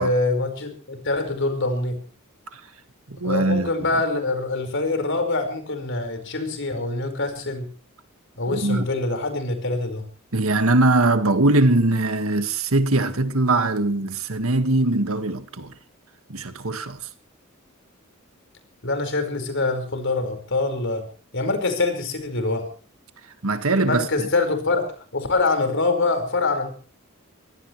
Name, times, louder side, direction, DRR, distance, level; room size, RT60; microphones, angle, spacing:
voice 1, 0.0-2.0 3.2-7.7 8.4-10.1 18.8-21.1 21.3-22.7 23.8-24.9 25.1-26.7, left 3 dB, 60° left, 5.0 m, -24 dB
voice 2, 3.1-3.7 8.5-8.9 10.3-15.7 16.3-17.1 23.4-24.3, right 2 dB, 75° right, 1.8 m, -21 dB
24.5 x 17.5 x 3.2 m
head